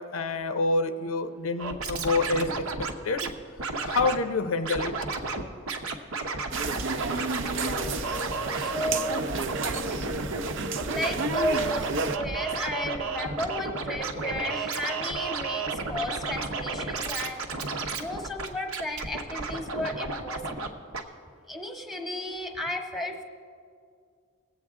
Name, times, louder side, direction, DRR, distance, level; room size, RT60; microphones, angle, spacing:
voice 1, 0.0-2.6 3.0-3.3 3.8-4.9 5.2-5.5, left 3 dB, 80° left, 9 dB, 0.6 m, -27 dB
Scratching (performance technique), 1.6-3.3 3.6-4.2 4.6-5.4 5.7-20.7 20.9-21.0, right 3 dB, 85° right, 0.9 m, -32 dB
sound 1, 6.5-12.2, right 4 dB, 60° right, 0.5 m, -32 dB
voice 2, 7.4-8.1 8.6-9.3 10.8-17.5 18.0-20.8 21.5-23.2, left 1 dB, ahead, 3 dB, 1.0 m, -33 dB
20.0 x 8.0 x 3.6 m, 2.2 s
head